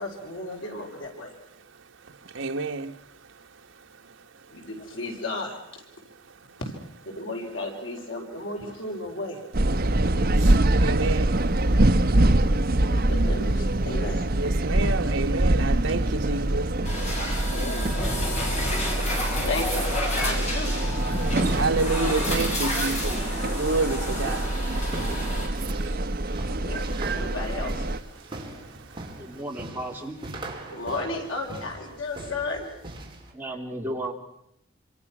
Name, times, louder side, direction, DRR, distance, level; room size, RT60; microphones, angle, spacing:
voice 1, 0.0-1.3 4.5-5.8 6.6-6.7 7.0-9.4 12.9-14.3 17.5-17.9 19.4-19.9 20.2-20.9 25.3-25.7 26.4-27.9 30.7-32.7, left 2 dB, 85° left, 4.8 m, -34 dB
voice 2, 2.2-3.0 10.3-11.4 14.3-16.7 19.1-19.2 21.1-24.5 25.6-26.0 28.4-28.5, right 3 dB, 75° right, 1.3 m, -29 dB
sound 1, 9.5-28.0, right 1 dB, 50° right, 1.0 m, -24 dB
sound 2, 16.9-25.5, left 1 dB, 35° left, 6.5 m, -31 dB
sound 3, 22.1-33.3, right 1 dB, 25° right, 4.3 m, -41 dB
voice 3, 29.2-30.2 33.3-34.1, right 1 dB, 10° right, 3.7 m, -34 dB
27.0 x 26.5 x 6.1 m
head